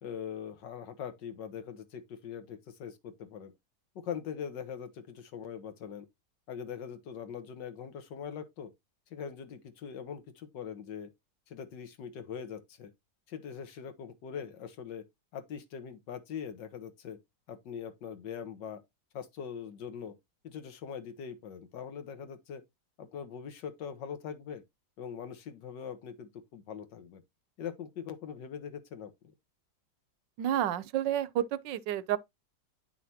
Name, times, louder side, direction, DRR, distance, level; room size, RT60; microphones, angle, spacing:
voice 1, 0.0-3.5 4.0-6.1 6.5-8.7 9.1-11.1 11.5-12.9 13.3-15.0 15.3-17.2 17.5-18.8 19.1-20.2 20.4-22.6 23.0-24.6 25.0-27.2 27.6-29.3, left 7 dB, 75° left, 1.8 m, -42 dB
voice 2, 30.4-32.2, right 11 dB, 80° right, 1.3 m, -30 dB
9.7 x 5.8 x 2.8 m
omnidirectional pair, 2.0 m